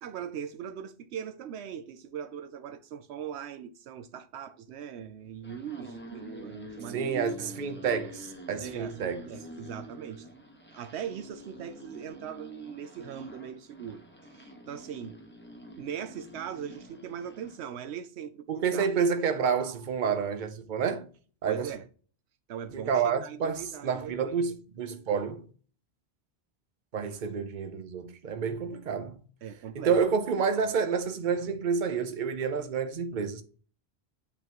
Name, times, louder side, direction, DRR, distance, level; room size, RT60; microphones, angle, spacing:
voice 1, 0.0-7.3 8.6-10.3 10.7-14.0 14.3-15.2 15.8-18.9 21.4-21.9 22.5-24.5 27.0-27.2 29.4-30.0, right 8 dB, 80° right, 0.9 m, -40 dB
sound 1, 5.3-17.6, equal, 10° left, 1.3 m, -47 dB
voice 2, 6.9-9.2 18.5-21.1 21.4-21.7 22.7-25.4 26.9-29.2 29.7-33.4, right 6 dB, 50° right, 0.9 m, -29 dB
8.4 x 5.3 x 3.0 m
omnidirectional pair, 1.1 m